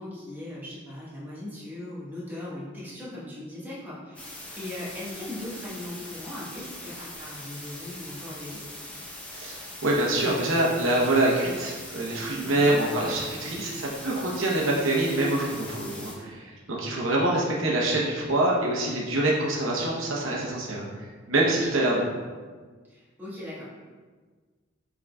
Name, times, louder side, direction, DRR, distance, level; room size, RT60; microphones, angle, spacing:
voice 1, 0.0-8.6 12.4-12.8 13.3-14.0 22.9-23.6, left 1 dB, 10° right, -9 dB, 1.3 m, -39 dB
sound 1, 4.2-16.1, left 1 dB, 5° left, 0.7 m, -42 dB
voice 2, 9.3-22.1, right 1 dB, 80° right, -3 dB, 0.9 m, -25 dB
6.1 x 3.7 x 2.3 m, 1.4 s
head